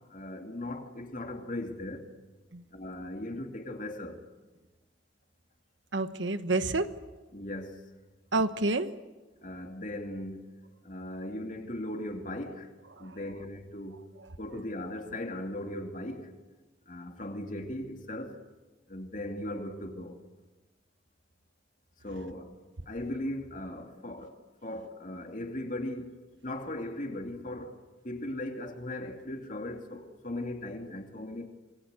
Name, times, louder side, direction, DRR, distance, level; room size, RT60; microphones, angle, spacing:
voice 1, 0.1-2.0 2.7-4.2 7.3-7.8 9.4-10.5 10.8-12.7 13.0-14.0 14.4-16.3 16.9-18.4 18.9-20.2 22.0-22.5 22.9-24.4 24.6-26.1 26.4-27.8 28.0-31.5, left 1 dB, 40° left, 2.7 m, -38 dB
voice 2, 5.9-7.0 8.3-8.9 12.9-13.2 14.2-14.3, right 2 dB, 75° right, 1.2 m, -29 dB
27.5 x 21.5 x 8.2 m
head